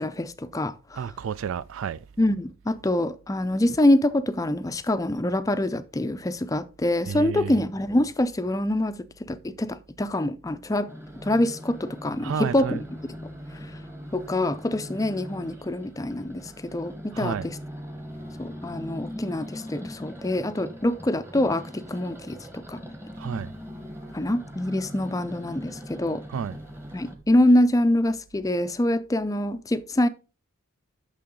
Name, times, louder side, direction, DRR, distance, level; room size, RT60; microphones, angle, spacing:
voice 1, 0.0-1.0 2.2-10.9 11.2-12.8 14.1-17.6 18.4-22.8 24.1-26.2 26.9-30.1, left 1 dB, 15° left, 0.4 m, -25 dB
voice 2, 1.0-2.0 7.1-7.6 12.2-12.8 17.1-17.5 23.2-23.5 26.3-26.6, right 7 dB, 70° right, 0.3 m, -31 dB
sound 1, 10.9-27.2, equal, 10° right, 1.1 m, -41 dB
8.5 x 6.2 x 3.8 m
head